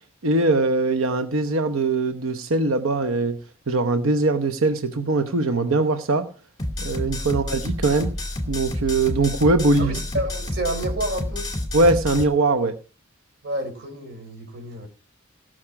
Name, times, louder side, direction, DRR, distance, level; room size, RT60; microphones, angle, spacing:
voice 1, 0.2-3.4 3.7-6.3 6.8-8.1 8.5-10.0 11.7-12.8, right 2 dB, 75° right, 0.9 m, -21 dB
sound 1, 6.6-12.2, left 1 dB, 20° left, 2.5 m, -29 dB
voice 2, 9.8-11.5 13.4-14.9, right 1 dB, 55° right, 4.1 m, -30 dB
17.5 x 6.3 x 6.0 m
head